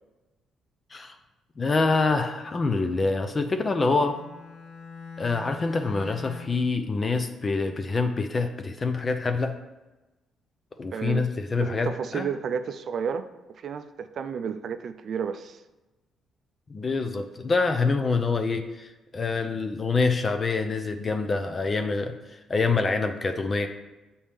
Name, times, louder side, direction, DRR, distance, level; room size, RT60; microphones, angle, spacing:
voice 1, 1.6-4.2 5.2-9.5 10.8-12.3 16.7-23.7, left 3 dB, 35° left, 6 dB, 0.5 m, -26 dB
Bowed string instrument, 3.3-6.7, left 5 dB, 90° left, 0.8 m, -43 dB
voice 2, 10.9-11.2 11.5-13.2 13.6-15.6, right 7 dB, 60° right, 10 dB, 0.4 m, -31 dB
7.2 x 4.2 x 3.5 m, 1.1 s
cardioid pair, 90°, 0 cm